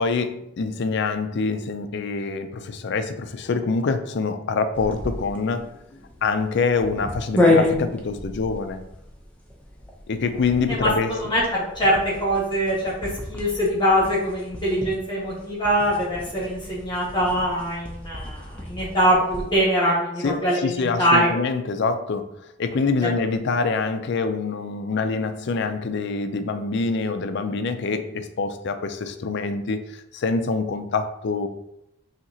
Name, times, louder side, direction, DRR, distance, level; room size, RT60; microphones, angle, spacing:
voice 1, 0.0-5.7 6.2-8.8 10.1-11.1 20.2-31.5, left 4 dB, 55° left, 9 dB, 0.4 m, -25 dB
sound 1, 4.7-19.7, left 2 dB, 5° left, 0.6 m, -30 dB
voice 2, 10.7-12.9 13.3-21.3 23.0-23.1, equal, 20° left, -6 dB, 1.4 m, -23 dB
5.7 x 2.8 x 2.8 m, 0.80 s
head